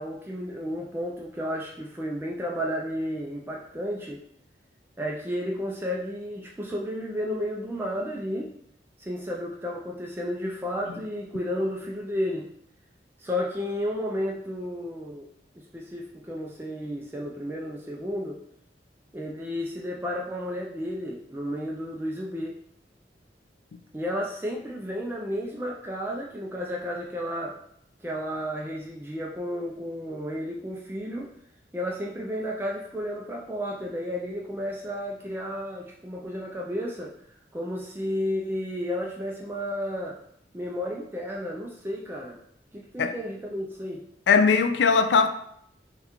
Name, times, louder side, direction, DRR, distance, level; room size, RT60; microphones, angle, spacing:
voice 1, 0.0-4.2 5.0-8.5 9.0-12.5 13.2-15.3 15.7-18.4 19.1-22.6 23.9-27.6 28.0-31.3 31.7-37.1 37.5-40.2 40.5-42.4 42.7-44.0, equal, 10° right, 0.4 m, -32 dB
voice 2, 44.3-45.3, left 5 dB, 80° left, 0.4 m, -19 dB
5.6 x 2.3 x 3.0 m
head